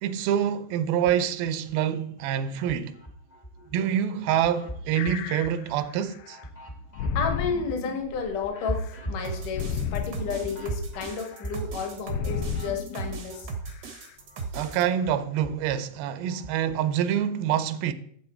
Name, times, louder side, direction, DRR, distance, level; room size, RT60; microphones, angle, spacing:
voice 1, 0.0-3.0 3.7-6.4 14.5-17.9, right 9 dB, 85° right, 2.5 m, -26 dB
sound 1, 1.0-1.7 2.2-3.8 4.2-13.9 14.2-16.8, equal, 30° left, 0.7 m, -40 dB
sound 2, 4.4-4.7 4.9-6.4 6.9-9.0 9.5-11.5 12.1-13.2 13.7-14.1 14.7-14.8, left 7 dB, 85° left, 2.3 m, -34 dB
voice 2, 7.1-13.5, left 5 dB, 65° left, 3.0 m, -32 dB
sound 3, 9.2-14.8, right 4 dB, 65° right, 1.0 m, -37 dB
11.0 x 7.7 x 4.4 m
omnidirectional pair, 4.2 m